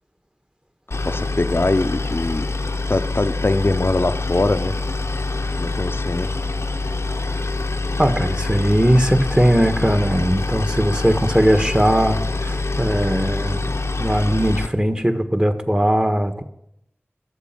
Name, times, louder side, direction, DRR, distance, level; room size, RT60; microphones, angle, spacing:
Boat Water vehicle, 0.9-14.7, left 3 dB, 85° left, 0.9 m, -25 dB
voice 1, 1.1-2.4 2.9-4.7 5.6-6.3, left 2 dB, 60° left, 9 dB, 0.7 m, -22 dB
voice 2, 8.0-16.4, equal, 20° right, 7 dB, 1.5 m, -19 dB
13.5 x 7.8 x 9.1 m, 0.78 s
wide cardioid pair, 45°, 5 cm